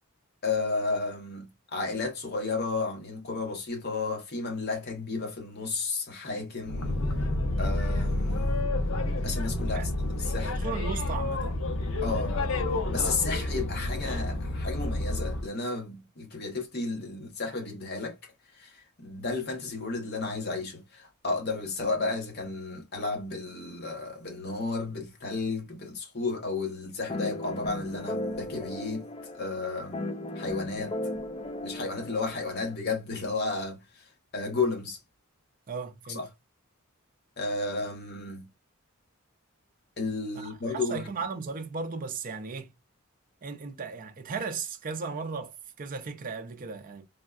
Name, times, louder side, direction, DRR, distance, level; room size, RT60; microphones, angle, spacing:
voice 1, 0.4-7.0 7.6-8.6 9.2-10.5 12.0-12.3 12.9-29.1 29.3-30.0 30.3-30.9 31.6-35.0 36.1-36.3 37.4-38.5 40.0-41.1, left 3 dB, 50° left, 0.9 m, -33 dB
Boat Water vehicle, 6.6-15.5, left 2 dB, 65° left, 0.6 m, -29 dB
voice 2, 10.4-11.6 35.7-36.2 40.4-42.7 43.4-47.0, right 5 dB, 40° right, 0.4 m, -36 dB
sound 1, 27.1-32.8, left 1 dB, 25° left, 0.4 m, -36 dB
3.5 x 2.1 x 2.3 m
head